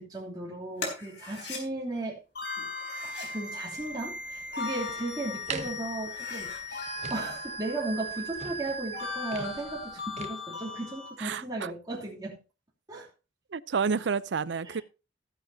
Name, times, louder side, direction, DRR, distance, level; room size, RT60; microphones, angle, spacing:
voice 1, 0.0-2.2 2.6-2.7 3.0-12.4 12.9-13.1 14.7-14.8, right 2 dB, 25° right, 3.0 m, -36 dB
sound 1, 0.8-1.6 2.7-3.4 4.3-5.1 5.5-5.6 6.0-6.6, left 3 dB, 90° left, 4.0 m, -41 dB
sound 2, 2.4-11.1, left 2 dB, 70° left, 5.1 m, -38 dB
sound 3, 3.7-10.3, right 4 dB, 40° right, 1.1 m, -44 dB
voice 2, 11.2-11.7 13.5-14.8, right 5 dB, 90° right, 0.5 m, -30 dB
14.5 x 10.0 x 2.8 m
head